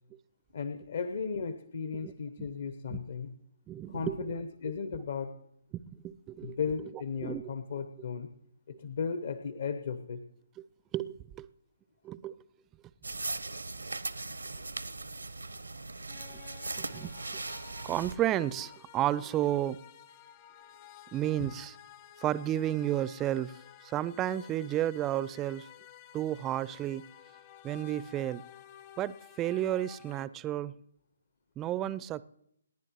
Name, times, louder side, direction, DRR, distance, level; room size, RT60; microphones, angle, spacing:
voice 1, 0.5-3.3 3.9-5.4 6.4-8.3 8.7-10.2 21.4-21.5, left 5 dB, 55° left, 0.9 m, -35 dB
voice 2, 3.7-4.3 5.7-6.6 7.2-7.5 10.9-11.5 12.0-12.3 16.8-17.4 17.8-19.8 21.1-21.7 22.2-23.6 23.8-25.7 26.1-27.1 27.6-28.4 29.0-30.7 31.6-32.2, right 12 dB, 20° right, 0.4 m, -32 dB
sound 1, 13.0-18.1, right 3 dB, 80° right, 0.8 m, -39 dB
sound 2, 16.1-30.3, left 10 dB, 30° left, 0.8 m, -53 dB
28.5 x 10.5 x 3.1 m
figure-of-eight pair, 135°, 0 cm